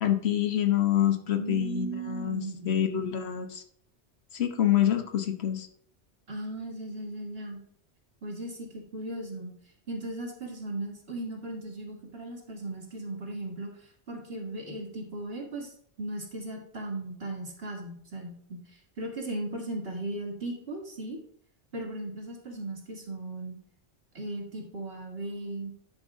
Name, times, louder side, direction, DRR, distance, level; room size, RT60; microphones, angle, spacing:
voice 1, 0.0-3.6 4.3-5.7, left 11 dB, 70° left, 6 dB, 1.2 m, -26 dB
voice 2, 1.4-2.8 6.3-7.6 8.2-9.5 9.9-15.7 16.0-18.6 19.0-21.2 21.7-23.6 24.1-25.7, right 1 dB, 60° right, 0 dB, 2.1 m, -37 dB
10.5 x 5.4 x 3.6 m, 0.62 s
omnidirectional pair, 1.1 m